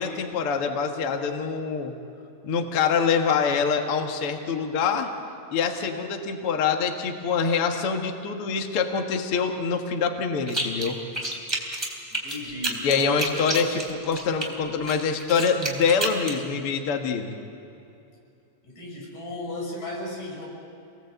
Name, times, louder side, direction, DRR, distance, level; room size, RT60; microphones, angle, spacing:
voice 1, 0.0-1.9 2.4-5.1 5.5-11.0 12.8-13.8 14.1-17.4, left 6 dB, 80° left, 4 dB, 1.2 m, -25 dB
sound 1, 10.5-10.9 11.1-14.5 14.9-16.4, right 1 dB, 5° right, 2.7 m, -29 dB
voice 2, 12.1-13.9 18.6-20.5, left 1 dB, 45° left, -2 dB, 7.4 m, -35 dB
29.0 x 20.0 x 8.1 m, 2.7 s
omnidirectional pair, 5.2 m